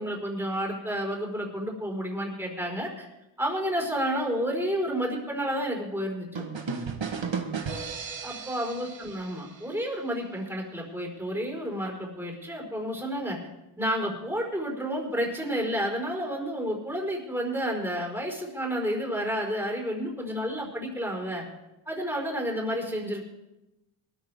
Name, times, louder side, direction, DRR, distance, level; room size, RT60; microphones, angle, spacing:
voice 1, 0.0-3.1 3.4-6.4 8.2-13.4 13.8-21.4 21.9-23.2, equal, 5° right, 0 dB, 4.7 m, -30 dB
sound 1, 6.4-10.1, right 5 dB, 75° right, 1.4 m, -35 dB
23.5 x 13.5 x 3.6 m, 0.96 s
wide cardioid pair, 80°, 45 cm